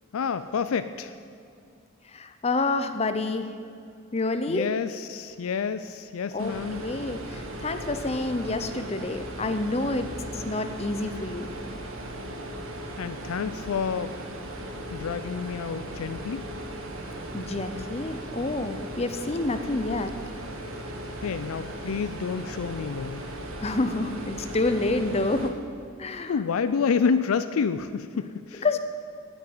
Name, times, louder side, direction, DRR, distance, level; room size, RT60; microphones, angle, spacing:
voice 1, 0.1-1.2 4.5-6.8 13.0-14.2 14.9-16.4 21.2-23.2 26.3-28.7, left 6 dB, 85° left, 12 dB, 0.4 m, -29 dB
voice 2, 2.1-3.5 4.1-4.7 6.3-6.5 6.8-11.5 17.3-20.1 23.6-25.6 26.0-26.3 28.6-28.8, left 2 dB, 30° left, 9 dB, 0.7 m, -28 dB
sound 1, 6.4-25.5, right 1 dB, 80° right, 1.5 m, -37 dB
9.0 x 8.5 x 9.3 m, 2.4 s
head